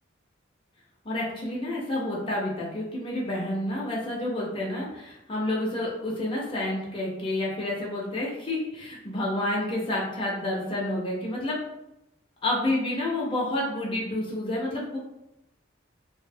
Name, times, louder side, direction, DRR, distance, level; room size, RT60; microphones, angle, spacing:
voice 1, 1.0-11.6 12.4-15.0, left 1 dB, 25° left, -4 dB, 0.5 m, -29 dB
2.6 x 2.0 x 2.6 m, 0.89 s
head